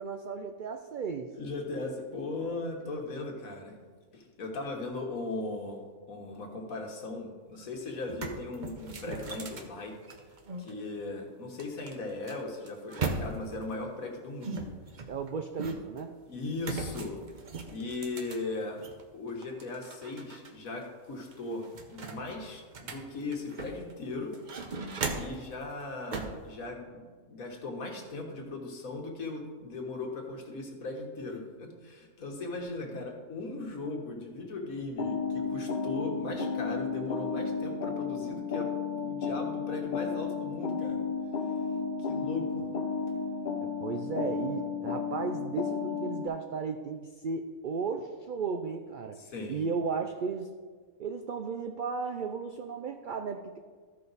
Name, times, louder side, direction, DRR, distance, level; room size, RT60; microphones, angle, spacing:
voice 1, 0.0-1.3 15.1-16.1 43.6-49.2 49.5-50.5 51.0-53.6, right 5 dB, 85° right, 6 dB, 0.4 m, -35 dB
voice 2, 1.4-3.8 4.1-5.8 6.1-9.9 10.6-14.7 16.3-17.2 17.7-18.8 19.1-24.3 25.2-27.0 27.3-38.7 39.0-41.1 42.0-42.7 49.2-49.6, left 2 dB, 85° left, 1 dB, 1.7 m, -38 dB
sound 1, 7.5-7.6 8.0-10.7 11.6-13.6 14.4-16.0 16.6-19.0 19.4-20.5 20.8-20.9 21.3-23.9 24.3-25.5 26.1-26.4, right 3 dB, 40° right, 0.8 m, -38 dB
sound 2, 35.0-46.3, left 5 dB, 45° left, 0.7 m, -33 dB
14.0 x 5.3 x 4.0 m, 1.5 s
omnidirectional pair, 1.4 m